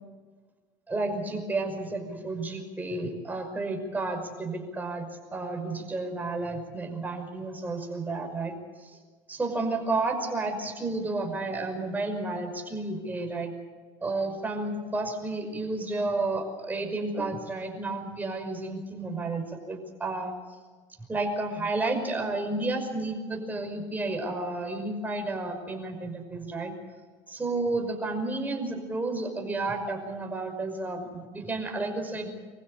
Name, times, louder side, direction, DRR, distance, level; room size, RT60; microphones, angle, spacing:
voice 1, 0.9-8.5 8.8-9.0 9.3-13.5 14.0-20.3 21.1-26.7 27.3-32.3, right 2 dB, 15° right, 3 dB, 5.7 m, -31 dB
25.5 x 15.5 x 8.4 m, 1.4 s
cardioid pair, 115°, 11 cm